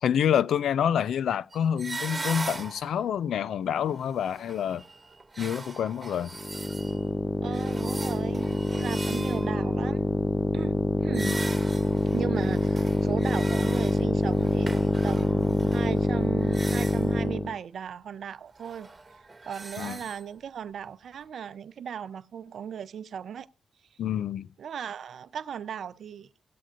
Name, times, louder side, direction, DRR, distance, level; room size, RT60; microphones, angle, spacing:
voice 1, 0.0-4.8 5.4-6.3 11.2-11.4 19.8-20.0 24.0-24.5, left 9 dB, 85° left, 0.4 m, -27 dB
sound 1, 1.5-3.1 3.7-7.1 7.5-9.8 11.1-17.2 18.5-20.2, right 3 dB, 30° right, 1.9 m, -40 dB
sound 2, 6.3-17.6, left 2 dB, 30° left, 0.6 m, -26 dB
voice 2, 7.4-10.1 10.5-10.8 11.0-11.5 12.1-19.2 19.4-23.5 24.6-26.3, right 8 dB, 75° right, 0.6 m, -37 dB
17.5 x 8.4 x 2.5 m
cardioid pair, 55°, 0 cm